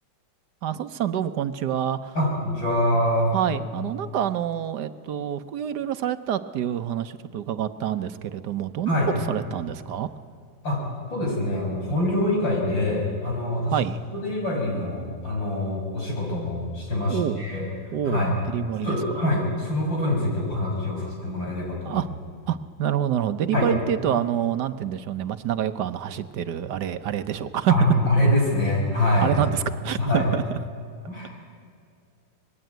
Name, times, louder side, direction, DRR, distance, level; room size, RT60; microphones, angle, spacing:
voice 1, 0.6-2.1 3.3-8.9 9.3-10.1 13.7-14.0 17.1-17.4 17.9-19.0 21.8-22.1 22.5-27.7 29.2-30.4, right 10 dB, 70° right, 11 dB, 1.3 m, -27 dB
voice 2, 2.1-3.3 8.9-9.1 10.6-10.8 11.1-13.7 14.1-17.7 18.0-18.4 18.8-22.0 23.5-23.7 27.7-29.3 30.0-30.3 31.1-31.3, left 1 dB, 80° left, -1 dB, 6.7 m, -24 dB
25.0 x 20.5 x 9.1 m, 2.3 s
omnidirectional pair, 2.0 m